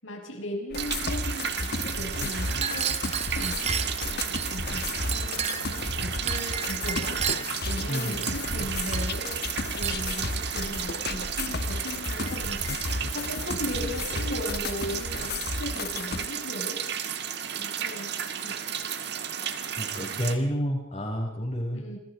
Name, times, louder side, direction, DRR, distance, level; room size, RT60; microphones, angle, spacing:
voice 1, 0.0-3.0 3.4-7.2 7.6-9.3 9.7-12.8 13.1-16.9 17.6-18.1 18.4-18.6 21.7-22.0, equal, 80° left, 2 dB, 6.4 m, -37 dB
sound 1, 0.7-16.3, left 3 dB, 50° left, 1.2 m, -33 dB
sound 2, 0.7-20.4, right 8 dB, 55° right, 1.8 m, -33 dB
Chink clink, 2.4-4.5 5.1-5.8 6.3-7.6 8.1-8.6 8.9-9.2 9.8-10.1 10.8-11.0 11.7-11.9 12.3-13.0 13.7-14.3 14.6-15.0 16.0-16.7 17.4-17.6 17.9-18.8, right 8 dB, 30° right, 1.2 m, -35 dB
voice 2, 7.9-8.2 19.8-21.8, equal, 30° left, 0 dB, 6.6 m, -29 dB
27.5 x 21.5 x 5.1 m, 0.76 s
head